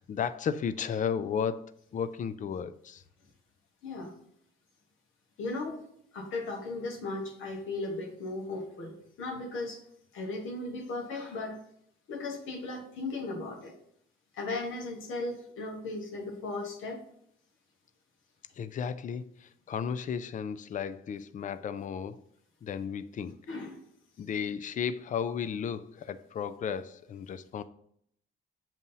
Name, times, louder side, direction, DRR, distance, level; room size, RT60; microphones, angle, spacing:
voice 1, 0.0-1.6 1.9-3.0 18.6-22.2 22.6-23.4 24.2-27.6, left 7 dB, 40° left, 0.4 m, -34 dB
voice 2, 3.8-4.1 5.4-5.8 6.1-9.8 10.1-11.6 12.1-13.7 14.3-17.0 23.5-23.8, left 2 dB, 80° left, 1.2 m, -36 dB
7.3 x 2.7 x 5.5 m
cardioid pair, 90°, 20 cm